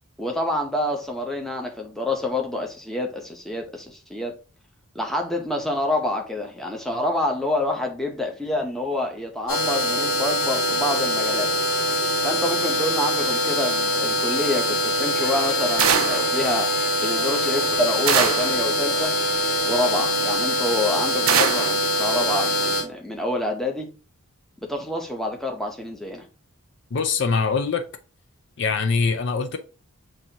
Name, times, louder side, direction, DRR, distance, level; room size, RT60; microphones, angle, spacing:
voice 1, 0.2-4.3 4.9-11.5 12.2-16.7 17.0-19.2 19.7-23.9 24.6-26.2, left 1 dB, ahead, 0.7 m, -27 dB
sound 1, 9.5-22.8, left 1 dB, 70° left, 1.7 m, -23 dB
sound 2, 15.0-21.0, right 1 dB, 35° left, 1.5 m, -41 dB
sound 3, 15.8-16.3 18.1-18.6 21.3-21.8, right 8 dB, 70° right, 0.5 m, -21 dB
voice 2, 26.9-27.8 28.6-29.6, left 5 dB, 55° left, 0.4 m, -23 dB
7.3 x 2.6 x 2.8 m
head